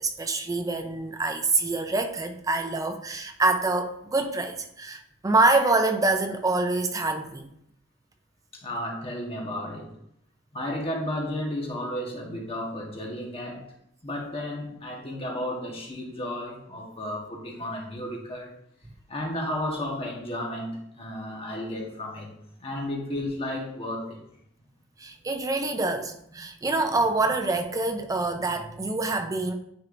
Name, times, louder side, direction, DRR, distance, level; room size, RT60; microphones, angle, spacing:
voice 1, 0.0-7.5 25.0-29.5, right 2 dB, 15° right, 6 dB, 0.4 m, -26 dB
voice 2, 8.5-9.9 10.5-13.7 14.0-18.6 19.1-22.3 22.6-24.2, left 1 dB, 30° left, -1 dB, 1.3 m, -33 dB
9.4 x 4.4 x 2.6 m, 0.74 s
head